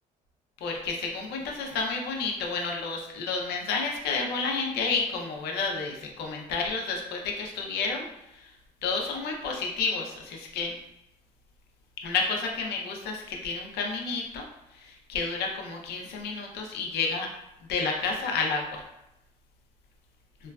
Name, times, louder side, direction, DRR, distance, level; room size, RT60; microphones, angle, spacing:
voice 1, 0.6-8.0 8.8-10.7 12.0-14.4 14.8-17.3 17.7-18.8, left 4 dB, 75° left, 1 dB, 0.6 m, -30 dB
3.0 x 2.4 x 2.2 m, 0.88 s
cardioid pair, 110°, 17 cm